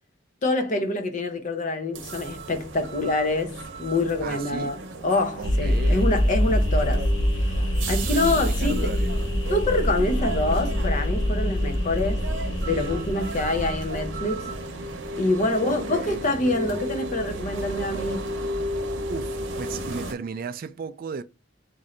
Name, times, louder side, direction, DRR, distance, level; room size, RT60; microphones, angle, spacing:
voice 1, 0.4-4.8 5.0-7.0 7.4-8.9 9.5-12.2 12.6-14.5 15.2-18.3, left 2 dB, 40° left, 0.6 m, -26 dB
sound 1, 1.9-20.1, right 1 dB, 90° right, 0.8 m, -34 dB
voice 2, 4.2-4.8 5.4-6.2 6.5-6.8 8.0-9.2 15.6-16.4 19.1-21.2, right 5 dB, 50° right, 0.3 m, -36 dB
sound 2, 5.4-14.7, equal, 80° left, 0.8 m, -25 dB
3.1 x 2.7 x 3.7 m
head